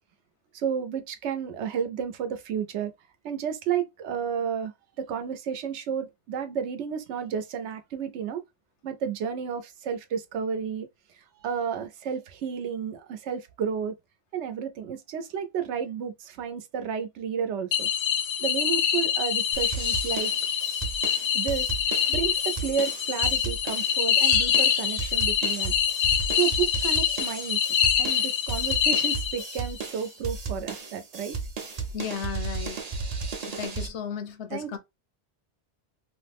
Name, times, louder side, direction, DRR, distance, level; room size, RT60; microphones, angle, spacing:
voice 1, 0.5-2.9 3.2-4.7 5.0-8.4 8.8-10.9 11.4-13.9 14.3-17.9 18.4-20.3 21.3-21.7 22.1-25.7 26.3-27.6 28.0-31.4 34.5-34.8, right 7 dB, 80° right, 0.9 m, -31 dB
sound 1, 17.7-29.7, left 8 dB, 60° left, 0.6 m, -25 dB
sound 2, 19.5-33.9, right 4 dB, 45° right, 0.6 m, -35 dB
voice 2, 31.9-32.8 33.5-34.8, left 7 dB, 85° left, 0.9 m, -34 dB
3.0 x 2.1 x 3.3 m
omnidirectional pair, 1.2 m